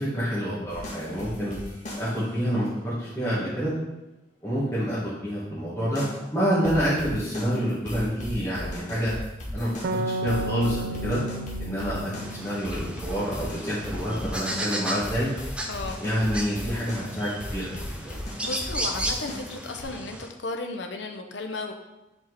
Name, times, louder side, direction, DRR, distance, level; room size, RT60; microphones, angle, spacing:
voice 1, 0.0-1.5 2.0-3.7 4.4-6.0 6.3-9.1 9.5-11.2 11.6-15.3 16.0-18.1, equal, 15° left, -12 dB, 2.1 m, -28 dB
sound 1, 0.7-2.4 5.9-6.2 6.6-19.8, left 1 dB, 40° left, 1.6 m, -37 dB
sound 2, 9.8-13.3, right 2 dB, 60° right, 0.5 m, -33 dB
sound 3, 12.2-20.3, right 1 dB, 5° right, 0.5 m, -35 dB
voice 2, 15.7-16.0 18.4-21.7, left 3 dB, 75° left, 4 dB, 0.7 m, -34 dB
7.7 x 4.5 x 4.2 m, 0.98 s
head